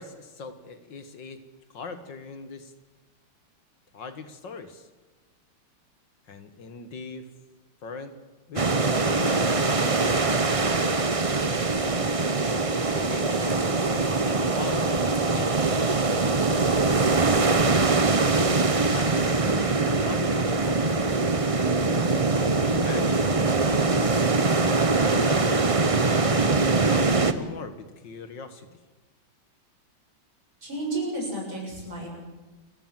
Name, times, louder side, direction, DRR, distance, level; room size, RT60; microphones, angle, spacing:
voice 1, 0.0-1.4 1.7-2.7 3.9-4.9 6.3-7.3 7.8-8.1 8.5-11.0 12.8-15.7 16.5-18.5 18.7-21.4 22.4-25.7 26.6-28.7, left 4 dB, 60° left, 10 dB, 2.1 m, -40 dB
sound 1, 8.6-27.3, right 3 dB, 30° right, 0.6 m, -23 dB
voice 2, 30.6-32.1, right 2 dB, 65° right, -1 dB, 8.2 m, -31 dB
29.0 x 15.0 x 7.6 m, 1.2 s
omnidirectional pair, 2.3 m